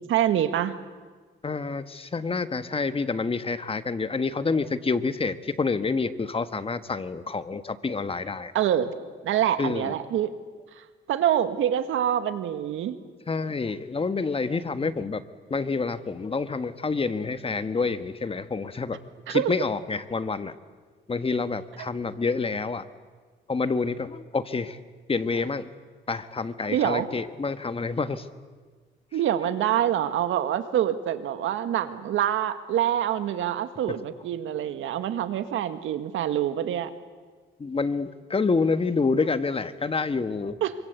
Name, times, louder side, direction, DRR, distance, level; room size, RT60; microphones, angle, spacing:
voice 1, 0.1-0.8 8.5-8.9 9.2-10.3 10.8-13.0 19.3-19.5 26.7-27.1 29.1-36.9 40.6-40.7, right 10 dB, 80° right, 10 dB, 1.8 m, -26 dB
voice 2, 1.4-8.5 9.6-9.9 13.3-15.2 15.5-19.0 19.3-20.5 21.1-22.8 23.5-24.8 25.1-25.7 26.1-28.3 37.6-40.6, left 4 dB, 30° left, 11 dB, 1.4 m, -28 dB
27.0 x 24.5 x 8.3 m, 1.4 s
cardioid pair, 90°, 20 cm